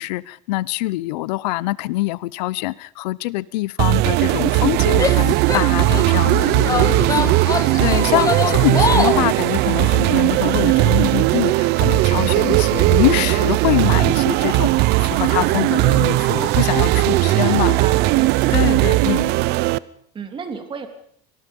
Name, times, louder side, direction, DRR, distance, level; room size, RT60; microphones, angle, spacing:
voice 1, 0.0-17.8 18.5-19.3, left 19 dB, 85° left, 0.8 m, -24 dB
sound 1, 3.8-19.8, right 19 dB, 50° right, 0.8 m, -17 dB
Female speech woman speaking / Yell, 4.9-6.2 6.6-9.3, left 5 dB, 15° left, 0.9 m, -23 dB
voice 2, 6.8-7.6 15.4-16.1 17.0-18.8 20.1-20.9, right 5 dB, 25° right, 3.2 m, -34 dB
25.0 x 19.5 x 5.4 m
cardioid pair, 145°, 21 cm